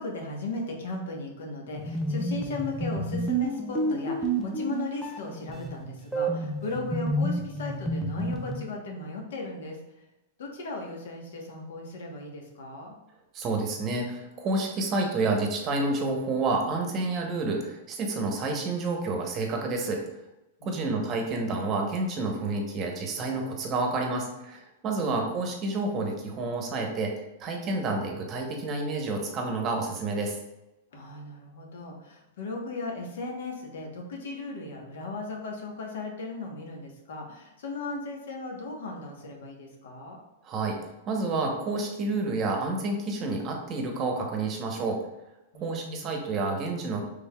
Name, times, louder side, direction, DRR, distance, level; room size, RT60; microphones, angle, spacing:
voice 1, 0.0-10.1 10.4-12.9 20.6-21.2 24.9-25.4 30.9-40.2 45.5-46.1, left 3 dB, 80° left, 1 dB, 1.0 m, -37 dB
sound 1, 1.7-8.6, right 1 dB, ahead, 0.5 m, -30 dB
voice 2, 13.3-20.0 20.6-27.1 27.4-30.4 40.4-40.8 41.1-45.0 45.6-47.0, right 3 dB, 30° right, 2 dB, 0.8 m, -29 dB
5.4 x 3.4 x 2.3 m, 0.96 s
supercardioid pair, 150°, 0 cm